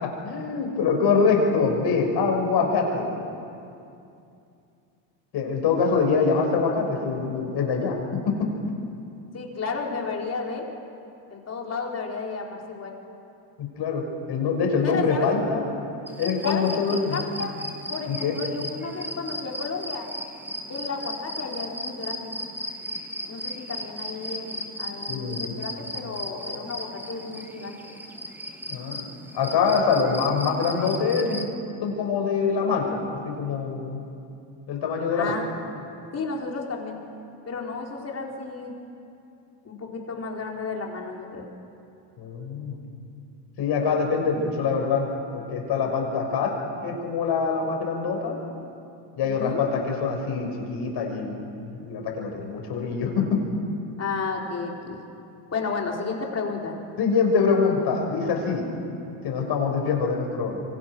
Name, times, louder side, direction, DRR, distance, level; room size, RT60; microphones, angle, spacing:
voice 1, 0.0-3.1 5.3-8.5 13.6-15.6 16.2-17.2 18.1-18.3 25.1-25.5 28.7-29.0 29.3-31.5 31.8-33.0 33.2-34.0 34.7-35.4 42.2-42.8 43.6-45.0 45.3-46.5 46.8-48.4 49.2-53.4 57.0-58.7 59.2-60.6, left 5 dB, 55° left, 2 dB, 5.9 m, -24 dB
voice 2, 9.3-10.7 11.3-13.0 14.8-15.3 16.4-17.5 17.9-20.1 20.7-22.3 23.3-27.8 35.1-35.5 36.1-37.0 37.5-38.7 39.6-41.5 49.2-49.6 54.0-55.0 55.5-56.8, left 4 dB, 30° left, 0 dB, 4.4 m, -32 dB
sound 1, 16.1-31.4, equal, 5° right, 2.4 m, -36 dB
27.0 x 26.0 x 6.2 m, 2.6 s
supercardioid pair, 105°, 47 cm